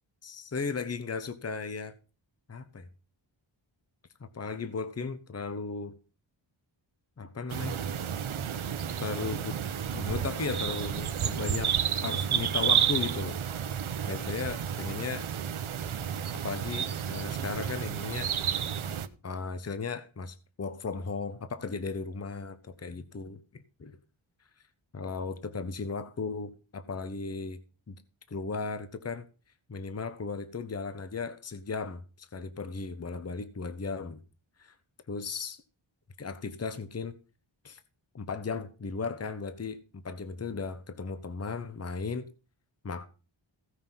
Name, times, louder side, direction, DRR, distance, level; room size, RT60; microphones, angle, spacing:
voice 1, 0.2-1.9 2.5-2.9 4.2-5.9 7.2-7.8 9.0-9.6 9.9-13.4 14.1-15.2 16.3-18.3 19.2-24.0 24.9-27.6 27.9-28.0 28.3-29.2 29.7-34.2 34.6-34.7 35.1-35.6 36.2-37.1 37.6-37.8 38.1-42.3 42.8-43.1, left 4 dB, 30° left, 1.0 m, -36 dB
sound 1, 7.5-19.1, right 8 dB, 80° right, 1.0 m, -31 dB
16.0 x 5.5 x 5.7 m
wide cardioid pair, 140°, 48 cm